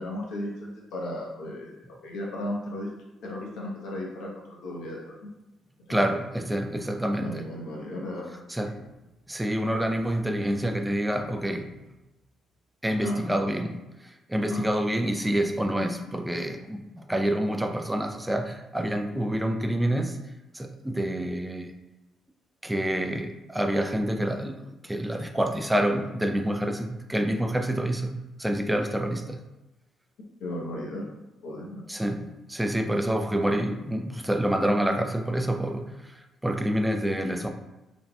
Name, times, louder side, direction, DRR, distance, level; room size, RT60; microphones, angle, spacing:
voice 1, 0.0-2.9 3.2-5.3 5.9-6.0 7.2-8.8 13.0-13.3 14.5-14.7 30.4-31.1 31.4-31.8, left 1 dB, 85° left, -2 dB, 0.9 m, -35 dB
voice 2, 5.9-7.4 8.5-8.8 9.3-11.7 12.8-13.8 14.0-20.2 20.5-21.7 22.6-28.1 28.4-29.4 31.9-37.5, right 1 dB, 10° right, 5 dB, 0.4 m, -27 dB
4.0 x 3.9 x 2.3 m, 1.0 s
cardioid pair, 90°, 0 cm